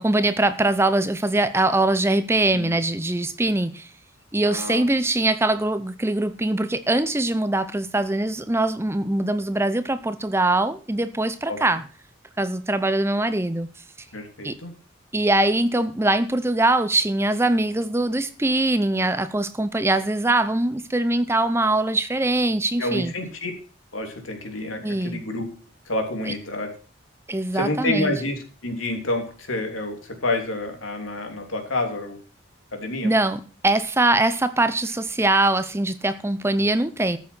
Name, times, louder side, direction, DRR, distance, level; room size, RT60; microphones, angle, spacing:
voice 1, 0.0-3.9 4.3-11.8 12.4-13.7 14.4-14.6 15.1-23.1 24.8-25.2 26.3-26.4 27.3-28.1 33.0-37.2, right 2 dB, 15° right, 0.6 m, -22 dB
voice 2, 4.4-4.8 11.5-11.6 14.1-14.7 22.8-23.5 23.9-25.5 25.8-26.7 27.5-32.2 32.7-33.1, left 2 dB, 85° left, 3.2 m, -28 dB
13.5 x 7.1 x 6.1 m
head